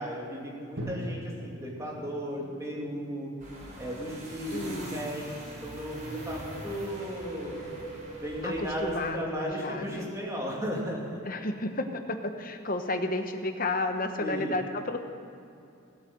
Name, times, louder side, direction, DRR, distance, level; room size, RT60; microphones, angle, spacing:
voice 1, 0.0-3.3 3.8-7.6 8.2-11.2 14.2-14.6, equal, 15° right, -3 dB, 2.7 m, -35 dB
Drum, 0.8-4.8, right 1 dB, 90° right, 2.4 m, -42 dB
sound 1, 3.4-9.2, equal, 40° right, 3.7 m, -44 dB
voice 2, 4.5-5.2 8.4-10.1 11.2-15.0, left 2 dB, 45° left, 6 dB, 1.0 m, -32 dB
Wind, 5.8-10.2 10.4-10.5, right 2 dB, 60° right, 2.6 m, -44 dB
17.5 x 8.4 x 7.8 m, 2.6 s
head